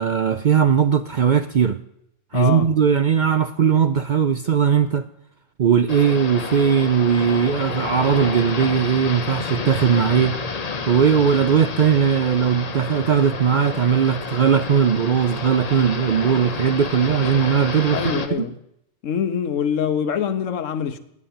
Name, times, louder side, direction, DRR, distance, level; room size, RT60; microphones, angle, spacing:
voice 1, 0.0-1.8 2.3-5.1 5.6-10.4 10.9-18.2, right 7 dB, 55° right, 0.5 m, -19 dB
voice 2, 2.3-2.7 17.9-18.6 19.0-21.0, left 8 dB, 75° left, 1.2 m, -24 dB
sound 1, 5.9-18.3, left 4 dB, 35° left, 0.8 m, -30 dB
10.5 x 9.0 x 8.6 m
omnidirectional pair, 1.3 m